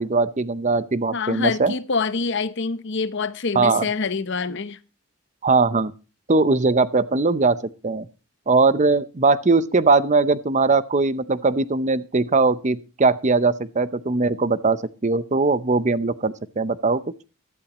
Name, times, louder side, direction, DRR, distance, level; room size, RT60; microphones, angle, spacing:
voice 1, 0.0-1.7 3.5-3.9 5.4-5.9 6.3-7.6 7.8-8.1 8.5-17.0, right 3 dB, 35° right, 0.6 m, -20 dB
voice 2, 1.1-4.8, left 4 dB, 55° left, 0.8 m, -26 dB
16.0 x 12.0 x 2.9 m
head